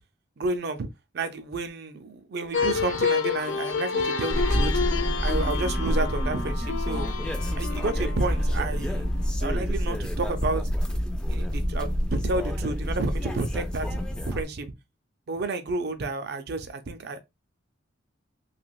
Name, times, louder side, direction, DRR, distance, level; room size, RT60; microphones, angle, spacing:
voice 1, 0.4-0.9 1.1-4.8 5.2-7.1 7.5-9.1 9.4-10.6 11.3-14.0 14.3-14.7 15.3-17.2, right 3 dB, 55° right, 0.5 m, -30 dB
sound 1, 2.5-9.3, left 5 dB, 70° left, 0.5 m, -30 dB
sound 2, 4.3-14.4, equal, 5° left, 0.4 m, -28 dB
3.3 x 2.9 x 2.3 m
head